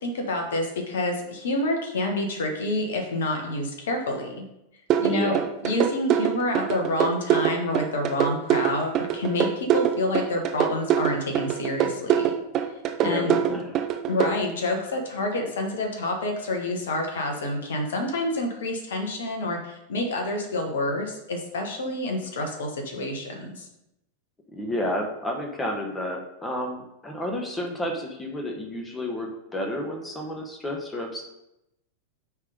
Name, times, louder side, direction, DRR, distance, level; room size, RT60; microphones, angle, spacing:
voice 1, 0.0-4.4 5.0-5.4 5.6-12.3 13.0-13.6 14.1-23.7, left 1 dB, 60° left, 3 dB, 1.3 m, -28 dB
sound 1, 4.9-14.3, right 10 dB, 35° right, 0.7 m, -23 dB
voice 2, 5.0-5.5 13.0-13.7 24.5-31.2, left 1 dB, 15° left, 2 dB, 1.3 m, -31 dB
9.8 x 3.6 x 5.2 m, 0.86 s
figure-of-eight pair, 90°, 0 cm